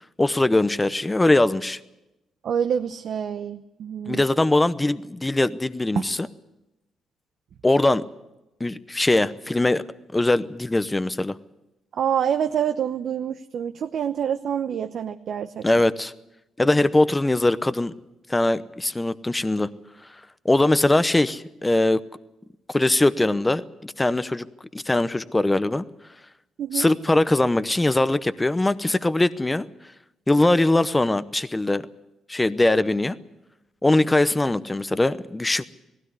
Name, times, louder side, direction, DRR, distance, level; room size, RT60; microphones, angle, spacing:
voice 1, 0.2-1.8 4.1-6.3 7.6-8.0 8.6-9.8 10.1-11.4 15.6-16.1 16.6-17.9 18.3-19.7 20.4-22.0 22.7-24.4 24.7-25.8 26.7-29.7 30.3-31.8 32.3-33.2 33.8-35.6, left 2 dB, 15° left, 13 dB, 0.8 m, -21 dB
voice 2, 2.4-4.2 6.0-6.1 12.0-15.6 26.6-26.9, right 8 dB, 65° right, 7 dB, 0.8 m, -26 dB
18.5 x 16.0 x 9.6 m, 0.95 s
cardioid pair, 90°, 0 cm